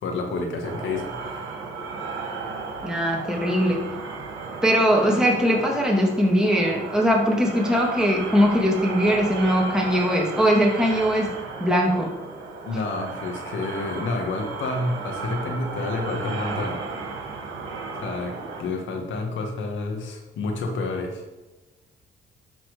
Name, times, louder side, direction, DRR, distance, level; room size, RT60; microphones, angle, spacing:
voice 1, 0.0-1.6 12.7-16.8 18.0-21.2, left 3 dB, 75° left, 3 dB, 2.0 m, -29 dB
sound 1, 0.6-18.6, right 4 dB, 75° right, 2.5 m, -34 dB
voice 2, 2.8-3.8 4.6-11.3 11.6-12.1, equal, 5° right, -2 dB, 2.7 m, -21 dB
13.0 x 4.4 x 5.2 m, 1.1 s
cardioid pair, 90°, 20 cm